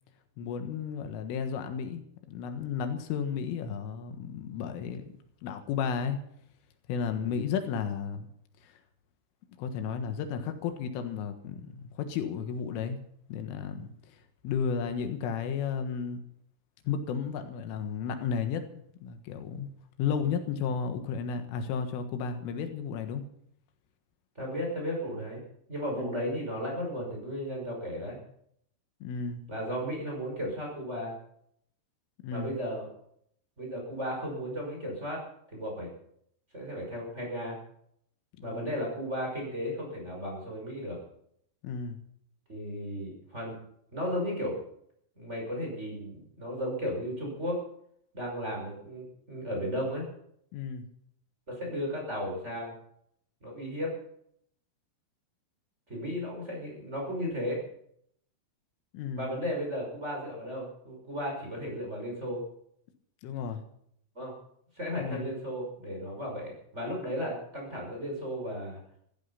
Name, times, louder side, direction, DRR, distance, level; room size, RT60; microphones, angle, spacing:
voice 1, 0.4-2.0 2.3-5.0 5.4-6.2 6.9-8.3 8.6-8.7 9.6-13.0 13.3-16.2 16.9-19.7 20.0-23.2 26.0-26.1 29.0-29.4 32.2-32.5 38.4-38.7 41.6-42.0 50.5-50.9 58.9-59.3 63.2-63.6 65.0-65.3, left 6 dB, 85° left, 7 dB, 4.0 m, -33 dB
voice 2, 24.3-25.4 25.7-28.2 29.5-31.1 32.3-32.9 33.6-35.2 35.5-35.9 36.5-37.6 38.4-41.0 42.5-43.6 43.9-44.6 45.2-47.6 48.1-50.0 51.5-52.7 53.4-53.9 55.9-57.6 59.2-62.4 64.1-64.3 64.7-68.8, equal, 15° right, -1 dB, 5.9 m, -35 dB
15.5 x 15.0 x 5.8 m, 0.70 s
omnidirectional pair, 5.6 m